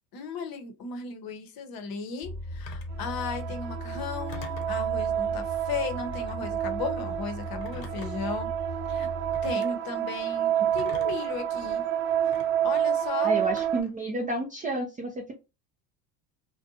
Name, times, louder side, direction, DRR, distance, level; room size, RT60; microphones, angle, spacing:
voice 1, 0.1-8.5 8.9-9.1 9.4-11.8 12.6-13.3, left 5 dB, 45° left, 7 dB, 0.8 m, -35 dB
sound 1, 2.2-9.5, equal, 10° left, 1.0 m, -38 dB
Telephone, 2.7-3.0 4.3-4.8 6.0-6.4 7.6-8.3 9.3-9.7 10.8-11.3 12.3-12.5 13.6-14.0, left 7 dB, 90° left, 0.8 m, -45 dB
sound 2, 2.9-13.8, right 10 dB, 70° right, 0.7 m, -29 dB
voice 2, 13.2-15.3, right 2 dB, 20° right, 1 dB, 0.3 m, -30 dB
2.5 x 2.2 x 2.6 m, 0.27 s
supercardioid pair, 95°, 49 cm